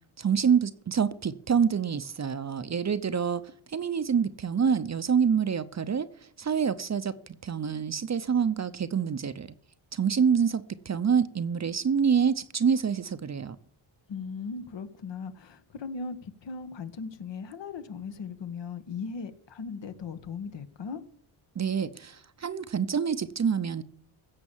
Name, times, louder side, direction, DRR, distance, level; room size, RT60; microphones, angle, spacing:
voice 1, 0.2-6.1 6.4-9.5 9.9-13.6 21.6-23.8, right 7 dB, 35° right, 0.8 m, -26 dB
voice 2, 14.1-21.0, left 5 dB, 60° left, 1.6 m, -38 dB
16.0 x 6.9 x 7.3 m
cardioid pair, 105°, 48 cm